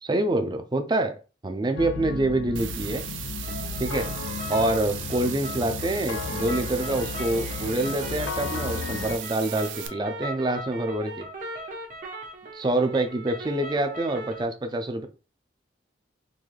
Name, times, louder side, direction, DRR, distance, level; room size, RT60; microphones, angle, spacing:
voice 1, 0.0-1.2 1.4-3.0 3.8-4.1 4.5-11.3 12.5-15.1, right 2 dB, 20° right, 6 dB, 0.4 m, -26 dB
sound 1, 1.8-9.2, left 6 dB, 70° left, 0.3 m, -34 dB
sound 2, 2.6-9.9, right 10 dB, 80° right, 0.5 m, -37 dB
sound 3, 3.4-14.4, right 1 dB, 45° right, 0.8 m, -40 dB
3.8 x 2.6 x 3.2 m, 0.33 s
head